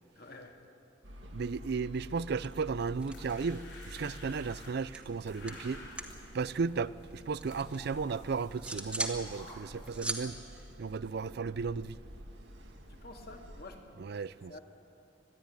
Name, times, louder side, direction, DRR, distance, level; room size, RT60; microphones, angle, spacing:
voice 1, 0.2-0.6 12.9-14.2 14.5-14.6, left 2 dB, 55° left, 2.1 m, -49 dB
sound 1, 1.0-13.7, equal, 85° right, 2.0 m, -50 dB
voice 2, 1.3-5.8 6.3-10.4 10.8-12.0 14.0-14.5, right 5 dB, 60° right, 0.4 m, -35 dB
sound 2, 2.0-2.2 2.4-3.7 3.9-6.2 6.5-7.8 8.2-9.2 9.6-11.7, right 2 dB, 5° right, 1.5 m, -41 dB
sound 3, 2.6-10.3, left 1 dB, 75° left, 6.2 m, -53 dB
21.0 x 12.5 x 9.8 m
head